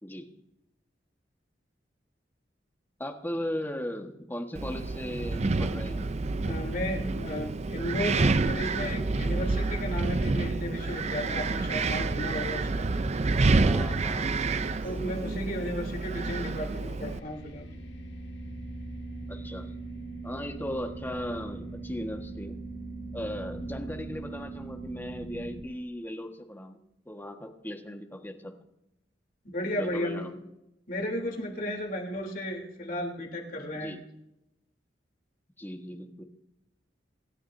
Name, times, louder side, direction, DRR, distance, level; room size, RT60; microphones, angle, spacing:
voice 1, 0.0-0.4 3.0-6.1 13.6-14.7 19.3-19.7 20.2-22.6 23.1-26.8 27.0-28.6 29.8-30.5 33.7-34.0 35.6-36.2, left 1 dB, 10° left, 3 dB, 1.5 m, -37 dB
Wind, 4.6-17.2, right 3 dB, 35° right, 0.5 m, -28 dB
voice 2, 6.4-12.9 14.8-17.7 29.4-30.2 30.9-34.0, equal, 50° left, 0 dB, 3.4 m, -34 dB
sound 1, 16.6-25.6, right 2 dB, 70° left, 2.1 m, -40 dB
27.0 x 12.5 x 2.7 m, 0.90 s
head